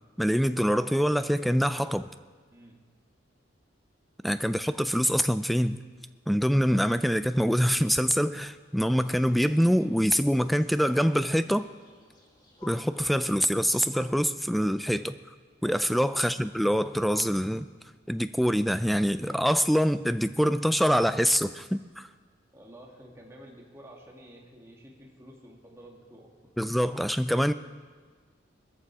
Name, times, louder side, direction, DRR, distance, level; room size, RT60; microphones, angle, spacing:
voice 1, 0.2-2.1 4.2-5.8 6.3-11.7 12.6-15.2 15.6-17.7 18.1-22.1 26.6-27.5, equal, ahead, 12 dB, 0.4 m, -25 dB
sound 1, 8.6-14.1, left 3 dB, 25° left, 2.2 m, -56 dB
voice 2, 22.5-26.3, right 1 dB, 15° right, -2 dB, 2.4 m, -50 dB
21.5 x 14.0 x 4.9 m, 1.5 s
head